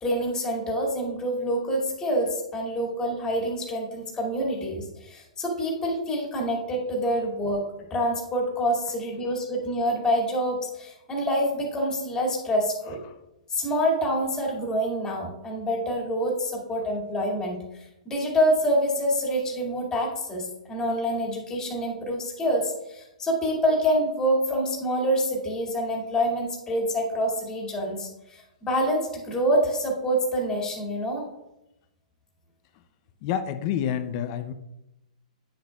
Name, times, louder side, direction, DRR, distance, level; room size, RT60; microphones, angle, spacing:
voice 1, 0.0-7.6 7.9-13.0 13.5-17.6 18.1-31.2, equal, 15° left, -1 dB, 2.2 m, -26 dB
voice 2, 33.2-34.5, left 9 dB, 40° left, 9 dB, 0.5 m, -28 dB
9.6 x 6.6 x 2.3 m, 0.87 s
hypercardioid pair, 140°, 4 cm